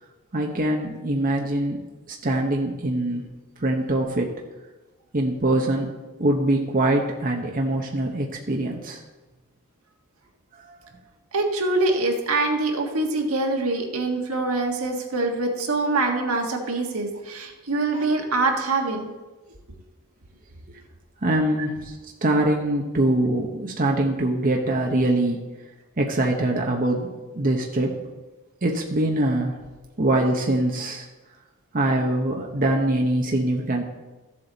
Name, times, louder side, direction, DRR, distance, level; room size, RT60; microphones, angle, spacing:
voice 1, 0.3-1.8 2.1-3.3 3.6-4.3 5.1-9.0 10.7-10.8 21.2-25.4 26.0-27.1 27.3-28.0 28.6-29.6 30.0-31.1 31.7-33.8, right 1 dB, 40° right, 0 dB, 0.9 m, -23 dB
voice 2, 11.3-19.1, right 2 dB, 75° right, 2 dB, 1.6 m, -24 dB
14.0 x 7.6 x 4.0 m, 1.2 s
head